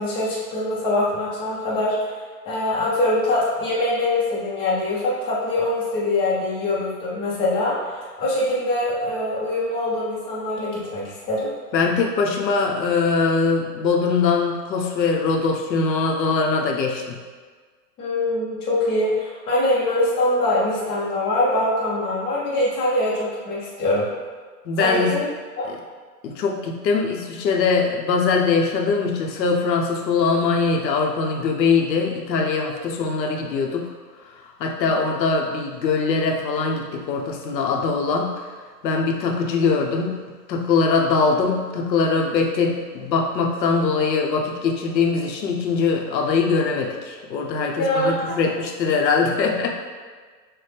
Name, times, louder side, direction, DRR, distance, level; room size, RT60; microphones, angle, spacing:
voice 1, 0.0-1.9 2.5-11.5 18.0-24.1 24.8-25.3 25.6-25.7 34.8-35.1 47.7-48.2, left 1 dB, 10° left, -8 dB, 0.5 m, -23 dB
voice 2, 11.7-17.2 24.6-25.2 25.7-25.8 26.2-33.9 34.4-38.3 38.8-40.2 40.5-49.7, left 4 dB, 90° left, 1 dB, 0.8 m, -22 dB
6.0 x 2.1 x 3.3 m, 1.5 s
hypercardioid pair, 140°, 49 cm